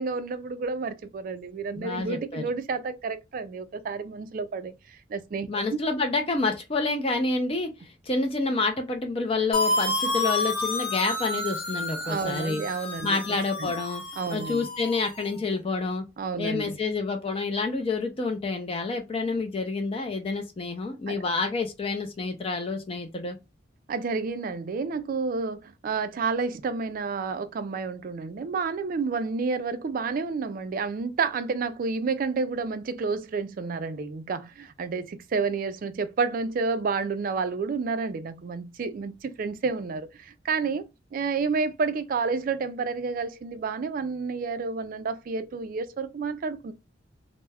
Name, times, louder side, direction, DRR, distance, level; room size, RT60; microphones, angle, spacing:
voice 1, 0.0-4.7 5.1-5.8 12.0-13.2 13.6-13.7 14.2-14.6 16.2-16.8 21.1-21.2 23.9-46.7, right 4 dB, 45° right, 0.3 m, -30 dB
voice 2, 1.8-2.5 5.5-12.6 13.0-14.0 14.3-16.0 16.4-23.4, left 3 dB, 30° left, 0.4 m, -28 dB
sound 1, 9.5-15.3, left 2 dB, 50° left, 0.9 m, -30 dB
2.2 x 2.0 x 3.3 m
head